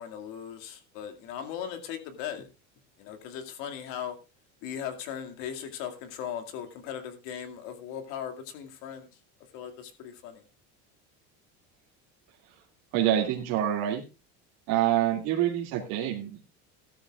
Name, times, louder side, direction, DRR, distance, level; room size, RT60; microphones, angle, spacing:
voice 1, 0.0-2.5 3.0-4.2 4.6-9.1 9.5-10.5, left 9 dB, 75° left, 6 dB, 2.3 m, -38 dB
voice 2, 12.9-14.0 14.7-16.5, right 11 dB, 70° right, -1 dB, 2.3 m, -26 dB
15.5 x 13.0 x 2.4 m, 0.28 s
supercardioid pair, 115°, 33 cm